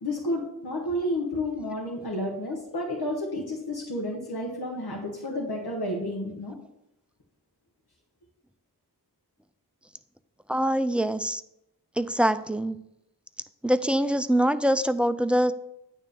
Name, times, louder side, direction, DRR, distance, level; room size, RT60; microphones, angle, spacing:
voice 1, 0.0-6.5, left 1 dB, 85° left, -1 dB, 1.3 m, -31 dB
voice 2, 10.5-11.4 12.0-12.8 13.6-15.5, equal, 5° right, 11 dB, 0.4 m, -24 dB
9.1 x 3.5 x 6.7 m, 0.82 s
wide cardioid pair, 55°, 37 cm